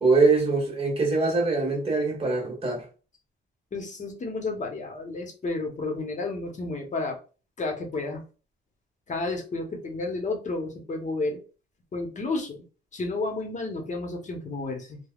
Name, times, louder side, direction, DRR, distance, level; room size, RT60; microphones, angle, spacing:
voice 1, 0.0-2.8, right 3 dB, 30° right, 1.5 m, -23 dB
voice 2, 3.7-7.2 7.6-8.2 9.1-11.4 11.9-12.6 12.9-15.0, left 3 dB, 40° left, 1.0 m, -31 dB
3.3 x 2.3 x 2.4 m
cardioid pair, 90°, 20 cm